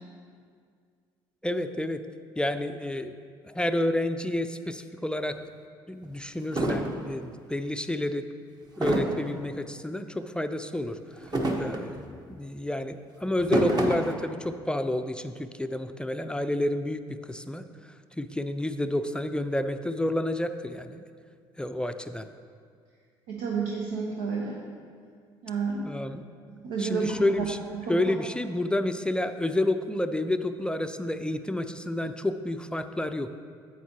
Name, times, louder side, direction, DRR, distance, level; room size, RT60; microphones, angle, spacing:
voice 1, 1.4-2.0 2.4-3.2 3.5-5.4 5.9-8.2 8.8-11.0 11.6-17.0 17.3-17.6 18.2-21.0 21.6-22.3 25.8-26.2 26.8-27.6 27.9-33.3, left 1 dB, 10° left, 8 dB, 0.4 m, -29 dB
sound 1, 5.3-5.4 6.0-6.1 6.5-7.0 8.8-9.3 11.2-12.0 13.3-14.1, right 1 dB, 35° right, 1.2 m, -27 dB
voice 2, 23.3-24.6 25.4-25.9 26.6-27.1 27.8-28.0, right 5 dB, 80° right, -2 dB, 0.9 m, -30 dB
9.2 x 8.3 x 2.9 m, 2.1 s
hypercardioid pair, 60°, 12 cm